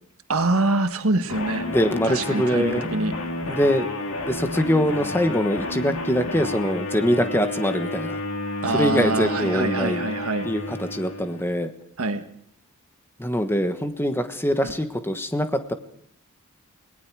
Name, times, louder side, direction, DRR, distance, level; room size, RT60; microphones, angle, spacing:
voice 1, 0.3-1.7 2.0-3.1 8.6-10.5 12.0-12.2 14.6-14.7, right 2 dB, 75° right, 7 dB, 1.6 m, -24 dB
sound 1, 1.3-11.5, left 2 dB, 70° left, 2.6 m, -31 dB
voice 2, 1.7-2.9 3.5-3.9 4.2-8.2 8.7-10.1 10.4-11.7 13.2-15.7, equal, 10° left, 9 dB, 1.2 m, -23 dB
28.5 x 19.0 x 4.8 m, 0.64 s
head